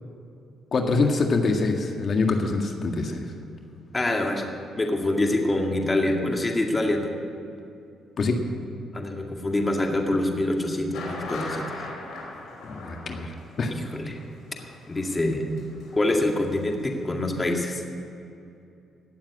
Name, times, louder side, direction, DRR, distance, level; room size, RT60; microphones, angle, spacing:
voice 1, 0.7-3.2 8.2-8.4 12.6-13.3 13.6-13.7, left 3 dB, 50° left, 3 dB, 1.7 m, -24 dB
voice 2, 3.9-7.1 8.9-11.6 13.7-14.2 14.9-15.5 15.9-17.8, left 1 dB, 20° left, 2 dB, 2.1 m, -25 dB
sound 1, 10.9-16.6 16.8-16.9 17.3-17.4, left 2 dB, 80° left, 4.7 m, -39 dB
17.5 x 7.4 x 9.9 m, 2.6 s
cardioid pair, 90°, 0 cm